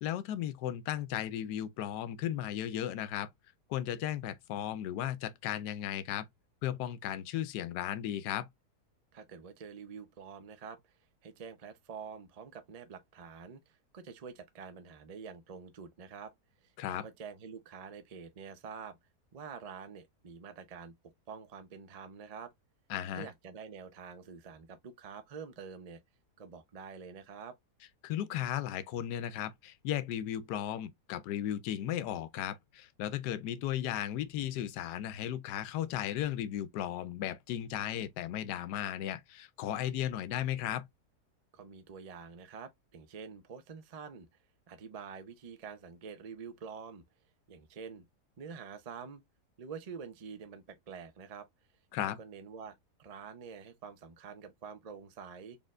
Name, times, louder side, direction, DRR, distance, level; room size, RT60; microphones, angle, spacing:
voice 1, 0.0-3.3 3.7-6.3 6.6-8.5 16.8-17.1 22.9-23.3 28.0-40.9 51.9-52.2, left 11 dB, 90° left, 1.2 m, -35 dB
voice 2, 9.1-10.9 11.2-16.3 16.6-19.0 19.3-20.9 21.3-22.5 23.1-26.0 26.4-27.6 41.5-44.3 44.7-47.0 47.5-48.1 48.4-49.2 49.6-51.5 52.2-55.6, right 6 dB, 60° right, 0.4 m, -47 dB
4.3 x 3.4 x 2.4 m
omnidirectional pair, 1.7 m